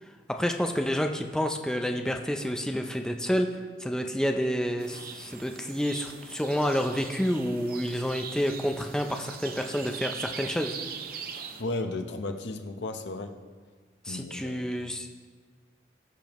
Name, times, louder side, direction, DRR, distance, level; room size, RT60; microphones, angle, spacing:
voice 1, 0.0-3.5 3.8-10.7 14.0-15.3, equal, 5° left, 4 dB, 0.5 m, -29 dB
sound 1, 4.8-11.6, right 6 dB, 55° right, 0.7 m, -41 dB
voice 2, 11.6-13.3 14.1-14.6, left 2 dB, 80° left, 6 dB, 0.9 m, -34 dB
20.5 x 6.9 x 3.1 m, 1.5 s
head